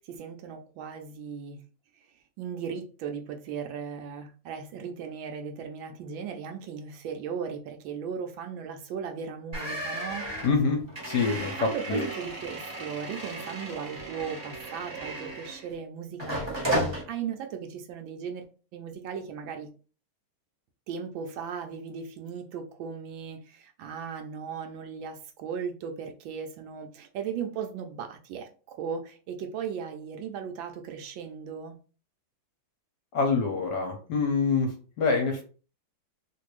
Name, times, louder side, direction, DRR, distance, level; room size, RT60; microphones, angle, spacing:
voice 1, 0.0-1.6 2.4-10.3 11.6-16.7 17.1-18.4 18.7-19.7 20.9-31.8, right 7 dB, 75° right, 1.2 m, -37 dB
sound 1, 9.5-15.8 16.2-17.0, right 1 dB, 20° right, 0.7 m, -34 dB
voice 2, 10.4-12.1 33.1-35.4, left 4 dB, 65° left, 1.2 m, -26 dB
3.3 x 2.5 x 3.0 m
omnidirectional pair, 2.3 m